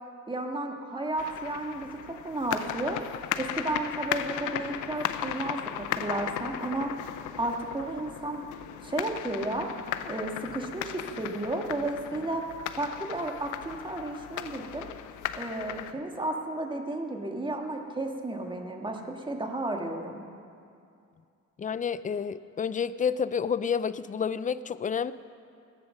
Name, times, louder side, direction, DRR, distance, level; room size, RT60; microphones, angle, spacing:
voice 1, 0.3-1.9 2.2-3.0 3.3-6.9 7.4-8.4 8.8-9.7 10.0-12.4 12.8-14.9 15.3-20.2, right 2 dB, 15° right, 2 dB, 1.7 m, -33 dB
sound 1, 1.2-15.9, left 11 dB, 85° left, 0.6 m, -36 dB
voice 2, 21.6-25.1, left 6 dB, 25° left, 16 dB, 0.4 m, -29 dB
16.5 x 8.8 x 6.5 m, 2.4 s
cardioid pair, 90°, 30 cm